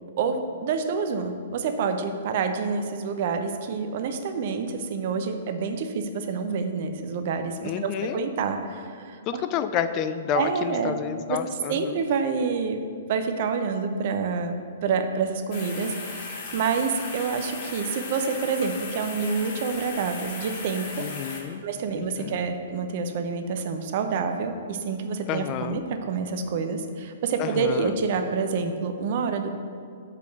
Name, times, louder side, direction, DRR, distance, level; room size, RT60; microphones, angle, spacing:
voice 1, 0.2-9.4 10.3-11.0 11.3-12.8 13.1-14.6 14.8-21.1 21.6-29.5, right 5 dB, 50° right, 7 dB, 0.8 m, -28 dB
voice 2, 7.6-8.3 9.3-11.9 21.0-21.6 22.0-22.4 25.3-25.8 27.4-27.9, left 8 dB, 35° left, 10 dB, 0.4 m, -29 dB
sound 1, 15.5-21.4, left 3 dB, 50° left, 1.5 m, -37 dB
6.6 x 5.1 x 6.8 m, 2.3 s
figure-of-eight pair, 120°, 0 cm